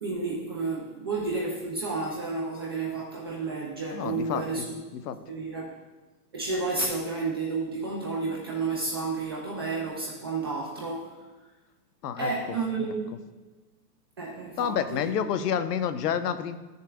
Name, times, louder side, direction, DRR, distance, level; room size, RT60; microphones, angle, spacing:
voice 1, 0.0-4.8 5.3-5.7 6.3-11.1 12.2-13.1 14.2-15.1, right 3 dB, 20° right, -3 dB, 0.3 m, -31 dB
voice 2, 3.9-4.4 4.9-5.2 12.0-12.6 14.6-16.5, left 8 dB, 70° left, 11 dB, 0.9 m, -29 dB
14.5 x 6.5 x 2.3 m, 1.2 s
hypercardioid pair, 140°, 49 cm